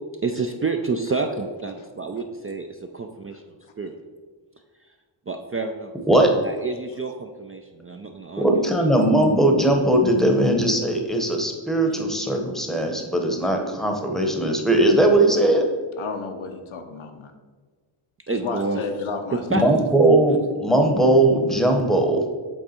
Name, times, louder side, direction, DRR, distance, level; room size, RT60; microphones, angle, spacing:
voice 1, 0.2-3.4 3.8-4.0 5.3-5.9 6.4-8.9 18.3-18.8 19.3-19.6, right 4 dB, 30° right, 4 dB, 0.3 m, -29 dB
voice 2, 8.4-15.6 19.6-22.2, right 1 dB, ahead, 3 dB, 0.8 m, -19 dB
voice 3, 16.0-17.3 18.3-20.1, left 4 dB, 70° left, 6 dB, 0.8 m, -33 dB
7.8 x 3.5 x 4.3 m, 1.5 s
wide cardioid pair, 90°, 50 cm